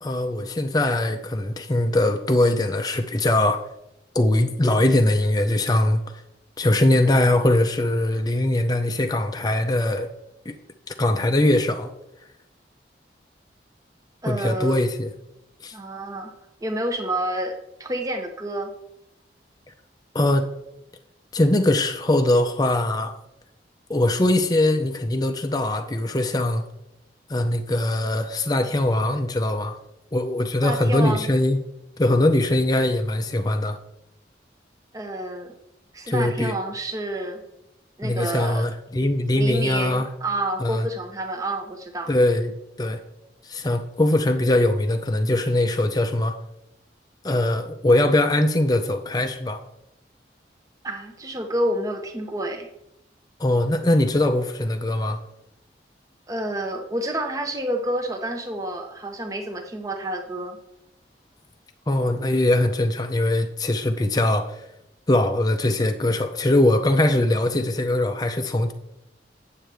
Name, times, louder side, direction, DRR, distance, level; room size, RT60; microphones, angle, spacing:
voice 1, 0.0-3.6 4.1-6.0 6.6-10.1 10.5-10.6 10.9-11.9 14.3-15.1 15.6-15.7 20.1-20.5 21.3-23.1 23.9-26.6 27.3-29.8 30.1-31.7 32.0-33.8 36.1-36.6 38.0-40.1 40.6-40.9 42.1-42.5 42.8-43.0 43.4-46.4 47.2-49.6 53.4-55.2 61.9-64.6 65.1-68.7, left 1 dB, 20° left, 6 dB, 0.5 m, -21 dB
voice 2, 14.2-14.8 15.7-16.3 16.6-18.7 30.6-31.3 34.9-35.5 35.9-37.4 38.0-38.7 39.3-42.1 50.8-52.7 56.3-60.6, right 1 dB, 20° right, 4 dB, 0.7 m, -29 dB
9.1 x 7.4 x 3.4 m, 0.84 s
head